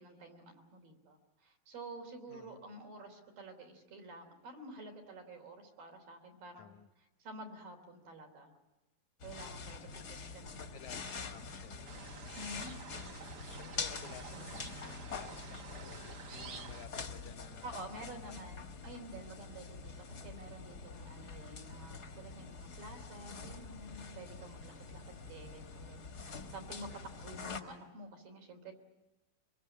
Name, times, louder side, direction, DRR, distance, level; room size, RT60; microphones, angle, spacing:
voice 1, 0.0-6.7 7.2-8.6 9.2-10.6 12.4-12.7 17.6-28.8, right 1 dB, 75° right, 3 dB, 5.0 m, -50 dB
voice 2, 2.3-2.6 6.6-6.9 9.8-12.2 13.5-18.5, left 9 dB, 70° left, 7 dB, 2.0 m, -55 dB
sound 1, 9.2-27.6, left 4 dB, 45° left, 1.3 m, -46 dB
sound 2, 11.8-16.9, right 6 dB, 55° right, 1.7 m, -50 dB
24.5 x 23.0 x 8.6 m, 1.0 s
omnidirectional pair, 4.1 m